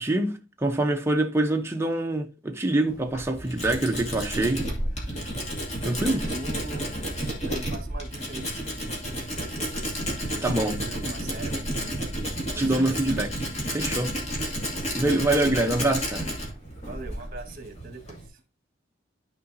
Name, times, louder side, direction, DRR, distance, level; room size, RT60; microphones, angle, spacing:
voice 1, 0.0-4.7 5.8-6.2 10.4-10.8 12.5-14.1 14.9-16.3, right 1 dB, 15° right, 0.8 m, -25 dB
Tools, 2.9-18.3, equal, 35° left, 2.3 m, -31 dB
voice 2, 5.8-7.0 7.4-8.8 9.2-9.7 10.2-12.0 12.5-12.9 16.8-18.4, right 2 dB, 50° right, 1.6 m, -42 dB
12.5 x 4.9 x 2.7 m
head